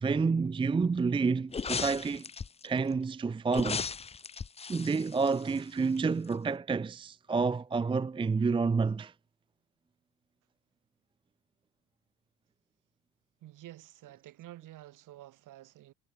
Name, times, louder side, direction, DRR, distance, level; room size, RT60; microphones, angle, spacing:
voice 1, 0.0-2.3 2.6-3.8 4.7-9.1, right 4 dB, 15° right, 0.7 m, -29 dB
sound 1, 1.5-2.7 3.5-6.0 6.3-6.4, left 5 dB, 15° left, 0.8 m, -37 dB
voice 2, 13.4-15.9, right 14 dB, 55° right, 6.6 m, -50 dB
cardioid pair, 130°, 38 cm